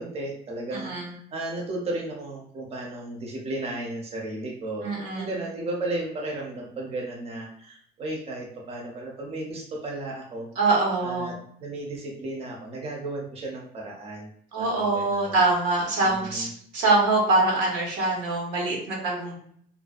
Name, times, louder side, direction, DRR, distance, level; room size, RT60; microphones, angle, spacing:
voice 1, 0.0-4.9 5.1-10.5 11.0-11.3 11.6-14.3 14.6-15.4 16.0-16.5, right 2 dB, 35° right, -1 dB, 0.6 m, -34 dB
voice 2, 0.7-1.1 4.8-5.3 10.6-11.3 14.5-16.5 16.7-19.4, right 3 dB, 90° right, -2 dB, 0.9 m, -24 dB
2.5 x 2.1 x 2.3 m, 0.63 s
cardioid pair, 110°, 17 cm